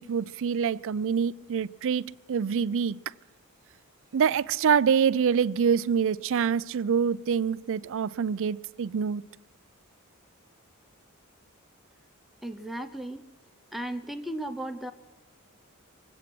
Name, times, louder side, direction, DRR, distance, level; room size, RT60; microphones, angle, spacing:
voice 1, 0.0-3.0 4.1-9.2, right 7 dB, 65° right, 0.4 m, -26 dB
voice 2, 12.4-13.3 13.7-14.9, right 1 dB, ahead, 0.6 m, -35 dB
23.5 x 8.7 x 6.0 m
head